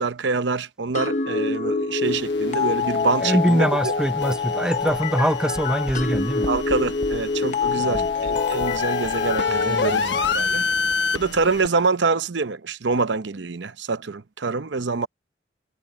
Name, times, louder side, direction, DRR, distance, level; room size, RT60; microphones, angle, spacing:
voice 1, 0.0-3.9 6.5-10.7 11.1-15.1, right 4 dB, 65° right, 0.7 m, -25 dB
sound 1, 0.9-10.3, left 4 dB, 40° left, 0.8 m, -25 dB
sound 2, 2.0-11.7, left 4 dB, 65° left, 1.1 m, -29 dB
voice 2, 3.2-6.5 7.8-8.1 9.5-10.2, equal, 5° right, 0.5 m, -23 dB
sound 3, 4.8-10.9 11.2-11.6, equal, 30° right, 6.8 m, -40 dB
head